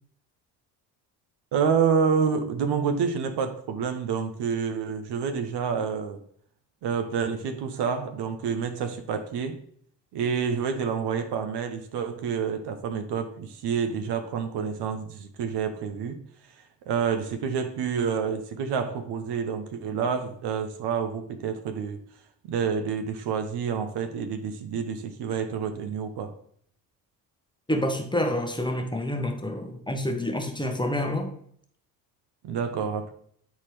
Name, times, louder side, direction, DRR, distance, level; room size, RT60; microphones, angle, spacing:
voice 1, 1.5-6.2 6.8-9.6 10.1-16.2 16.9-22.0 22.5-26.3 32.4-33.1, right 6 dB, 55° right, 7 dB, 0.9 m, -28 dB
voice 2, 27.7-31.3, left 1 dB, 10° left, 5 dB, 1.1 m, -28 dB
9.3 x 4.1 x 3.3 m, 0.63 s
hypercardioid pair, 55°, 48 cm